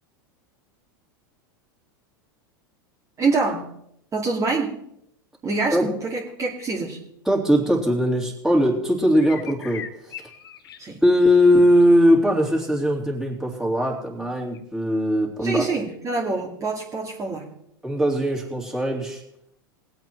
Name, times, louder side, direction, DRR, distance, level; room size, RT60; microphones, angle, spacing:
voice 1, 3.2-3.7 4.1-4.8 5.4-7.0 10.8-11.0 15.4-17.5, right 3 dB, 25° right, -2 dB, 2.3 m, -25 dB
voice 2, 7.2-10.1 11.0-15.7 17.8-19.2, equal, 5° right, -1 dB, 3.2 m, -20 dB
sound 1, 9.2-12.1 14.5-14.6, left 9 dB, 85° left, 1.0 m, -40 dB
20.0 x 8.3 x 4.6 m, 0.77 s
hypercardioid pair, 105°, 12 cm